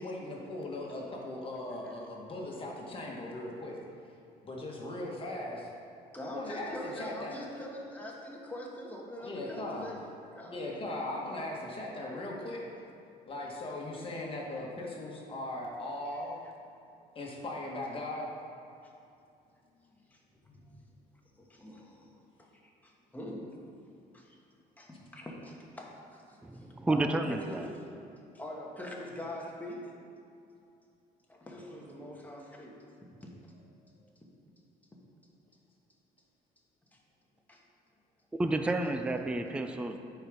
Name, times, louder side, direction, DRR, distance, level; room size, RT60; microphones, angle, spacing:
voice 1, 0.0-3.8 4.4-5.7 6.3-7.4 9.2-9.9 10.4-12.6 13.3-16.3 17.1-18.3, left 1 dB, 30° left, 1.5 m, -38 dB
voice 2, 6.1-10.6 16.0-16.5 18.8-18.9 19.9-20.7 21.4-22.5 22.8-23.6 24.1-24.4 24.8-27.9 28.3-29.9 30.6-30.7 31.3-32.8 33.2-34.1 36.9-37.0 37.5-37.6, left 1 dB, 10° left, 1.4 m, -44 dB
voice 3, 26.4-27.7 38.4-40.0, right 2 dB, 5° right, 0.4 m, -30 dB
9.1 x 4.6 x 5.1 m
cardioid pair, 110°, 17 cm